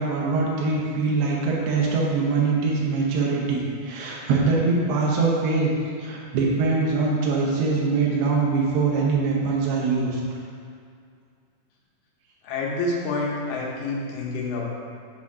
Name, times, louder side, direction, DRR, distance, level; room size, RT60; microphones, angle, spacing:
voice 1, 0.0-5.7 6.0-10.2, right 4 dB, 90° right, -3 dB, 2.9 m, -23 dB
voice 2, 12.4-14.7, left 3 dB, 80° left, -3 dB, 2.8 m, -28 dB
7.0 x 4.3 x 4.8 m, 2.2 s
omnidirectional pair, 4.5 m